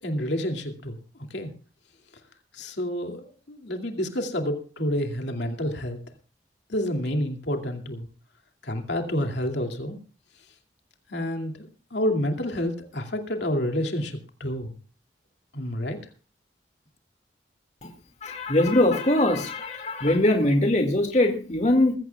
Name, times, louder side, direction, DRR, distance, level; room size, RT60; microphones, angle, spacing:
voice 1, 0.0-1.0 1.3-1.5 2.5-6.0 6.7-8.1 8.6-10.0 11.1-14.7 15.5-16.0, left 1 dB, 80° left, 4 dB, 2.5 m, -29 dB
voice 2, 18.2-21.9, left 1 dB, 40° left, 4 dB, 2.1 m, -22 dB
22.0 x 15.0 x 2.3 m, 0.39 s
head